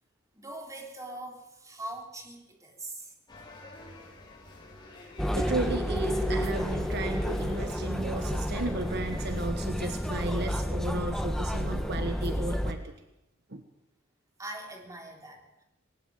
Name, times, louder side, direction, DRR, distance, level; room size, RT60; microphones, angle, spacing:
voice 1, 0.3-3.2 14.4-15.6, right 1 dB, 15° right, 2 dB, 3.3 m, -42 dB
sound 1, 3.3-9.4, left 2 dB, 20° left, 5.8 m, -49 dB
sound 2, 5.2-12.7, equal, ahead, 1.4 m, -30 dB
voice 2, 5.3-12.9 13.5-13.6, right 2 dB, 50° right, 7 dB, 1.4 m, -34 dB
20.0 x 19.0 x 7.6 m, 0.90 s
head